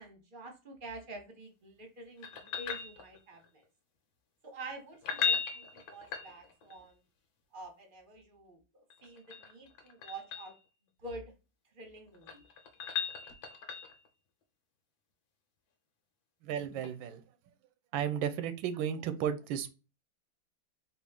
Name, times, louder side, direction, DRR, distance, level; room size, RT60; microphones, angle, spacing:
voice 1, 0.0-3.6 4.4-7.0 7.5-10.5 11.0-11.2 11.7-12.4, right 2 dB, 40° right, 4 dB, 0.7 m, -47 dB
sound 1, 2.2-3.5 4.9-6.8 8.9-10.6 12.0-14.1 16.8-16.9, left 6 dB, 85° left, 1.6 m, -37 dB
voice 2, 16.4-17.2 17.9-19.7, right 9 dB, 90° right, 11 dB, 1.4 m, -34 dB
4.2 x 2.4 x 3.4 m, 0.31 s
omnidirectional pair, 2.1 m